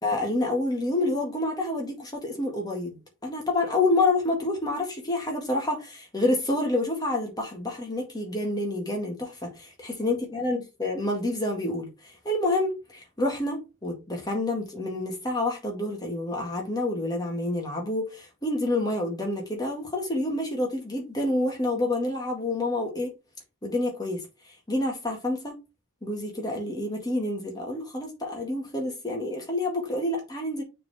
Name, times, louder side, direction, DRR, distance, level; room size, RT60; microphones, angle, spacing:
voice 1, 0.0-11.9 12.3-23.1 23.6-24.2 24.7-25.5 26.0-30.6, left 2 dB, 20° left, 1.9 m, -28 dB
6.6 x 3.8 x 4.2 m
head